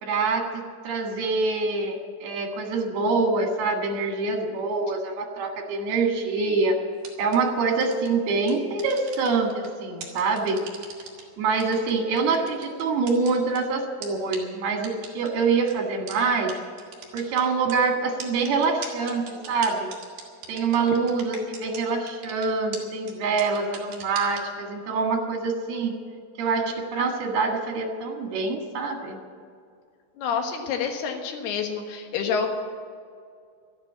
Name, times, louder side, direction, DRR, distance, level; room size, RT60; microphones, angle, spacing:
voice 1, 0.0-6.8 7.2-10.6 11.4-16.5 17.1-19.9 20.5-25.9 26.4-29.2, right 4 dB, 80° right, 3 dB, 3.7 m, -25 dB
sound 1, 7.0-7.4 7.8-8.1 8.5-9.7 10.0-11.2 11.6-13.6 14.0-14.1 14.3-14.4 14.8-15.3 15.7-15.8 16.1-16.2 16.5-16.6 16.8-17.7 18.2-21.8 22.1-22.5 22.7-22.8 23.1-23.2 23.4-24.4, right 6 dB, 55° right, 3.3 m, -38 dB
voice 2, 30.2-32.5, left 6 dB, 90° left, 4 dB, 3.5 m, -28 dB
13.0 x 10.5 x 8.8 m, 2.2 s
omnidirectional pair, 4.4 m